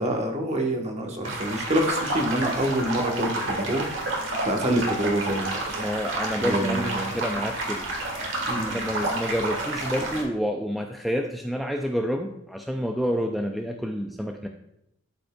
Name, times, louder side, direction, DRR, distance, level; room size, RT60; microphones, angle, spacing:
voice 1, 0.0-4.1 4.4-5.5 6.4-7.1 8.5-8.8, right 1 dB, 35° right, 2 dB, 1.1 m, -26 dB
sound 1, 1.2-10.2, right 2 dB, 70° right, 1.4 m, -30 dB
voice 2, 5.7-7.9 8.7-14.5, equal, ahead, 2 dB, 0.4 m, -28 dB
12.0 x 5.2 x 2.2 m, 0.80 s
head